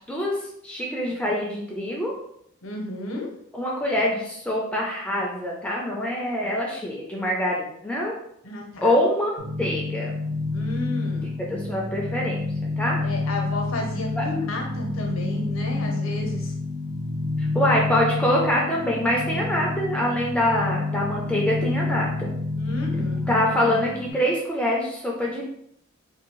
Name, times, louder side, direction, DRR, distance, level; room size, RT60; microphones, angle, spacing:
voice 1, 0.6-2.1 3.5-8.1 8.8-10.1 11.2-12.4 12.8-13.0 14.2-14.3 17.4-22.3 23.3-25.4, left 1 dB, 5° left, -3 dB, 0.4 m, -25 dB
voice 2, 2.6-3.3 8.4-9.0 10.5-11.3 13.0-16.5 22.6-23.2, left 2 dB, 80° left, 1 dB, 0.7 m, -32 dB
sound 1, 9.4-24.1, left 2 dB, 85° right, 0.7 m, -28 dB
2.6 x 2.6 x 3.0 m, 0.72 s
head